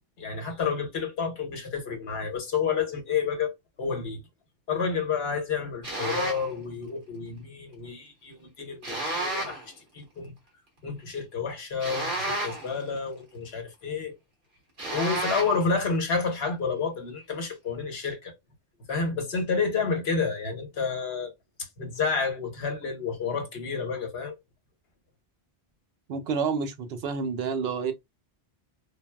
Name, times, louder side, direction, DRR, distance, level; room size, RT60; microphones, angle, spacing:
voice 1, 0.2-3.5 3.8-4.2 4.7-10.3 10.8-14.1 14.9-18.3 18.9-21.3 21.6-24.4, left 5 dB, 80° left, 1.1 m, -30 dB
sound 1, 5.8-6.5 8.8-9.7 11.8-12.8 14.8-15.7, right 2 dB, 55° right, 1.4 m, -31 dB
voice 2, 26.1-27.9, right 5 dB, 75° right, 0.8 m, -29 dB
3.7 x 2.0 x 2.2 m
omnidirectional pair, 1.0 m